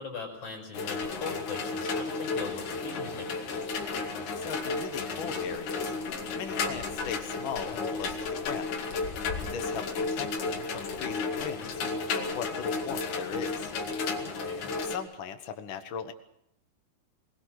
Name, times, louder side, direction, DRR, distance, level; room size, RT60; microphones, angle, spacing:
voice 1, 0.0-3.8 14.2-14.7, left 5 dB, 40° left, 2 dB, 6.6 m, -40 dB
sound 1, 0.7-15.0, left 4 dB, 60° left, 3.5 m, -33 dB
voice 2, 4.3-8.8 9.5-13.7 14.8-16.1, left 7 dB, 75° left, 7 dB, 1.1 m, -39 dB
22.0 x 21.5 x 6.5 m, 0.77 s
omnidirectional pair, 4.4 m